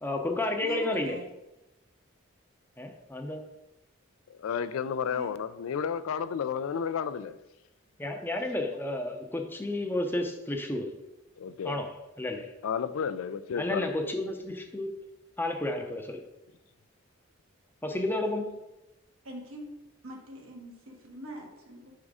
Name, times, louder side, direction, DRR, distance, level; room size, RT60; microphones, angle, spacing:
voice 1, 0.0-1.2 2.8-3.4 8.0-10.9 11.6-12.5 13.6-14.9 15.4-16.2 17.8-18.6, left 1 dB, 10° left, 3 dB, 0.5 m, -31 dB
voice 2, 0.6-1.3 5.1-5.3 19.2-19.7 20.0-21.9, equal, 90° right, 0 dB, 1.4 m, -43 dB
voice 3, 4.3-7.4 11.4-11.8 12.6-13.9, left 7 dB, 85° left, 14 dB, 0.3 m, -32 dB
5.3 x 3.7 x 4.8 m, 0.94 s
head